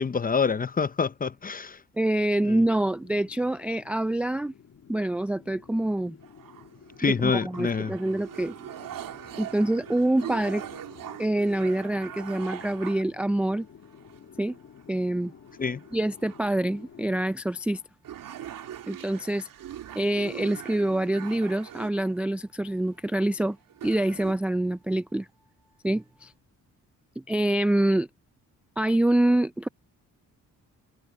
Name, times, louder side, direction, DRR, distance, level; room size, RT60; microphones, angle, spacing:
voice 1, 0.0-1.8 2.5-2.6 7.0-7.9 15.6-15.8, left 5 dB, 25° left, 0.7 m, -26 dB
voice 2, 2.0-4.5 4.9-6.2 7.0-8.5 9.4-10.6 11.2-13.7 14.4-14.6 14.9-15.3 15.9-17.8 18.9-19.5 19.9-23.6 23.8-25.3 25.8-26.3 27.2-28.1 28.8-29.7, right 1 dB, 5° right, 0.3 m, -26 dB
sound 1, 2.5-17.2, left 7 dB, 55° left, 2.5 m, -51 dB
sound 2, 6.2-7.1 7.5-13.0 13.9-14.5 14.8-14.9 15.5-16.6 17.3-17.4 17.7-17.8 18.0-22.4 23.3-23.4 23.7-24.3, right 11 dB, 75° right, 2.8 m, -42 dB
sound 3, 9.6-26.4, equal, 60° right, 4.9 m, -70 dB
cardioid pair, 100°, 33 cm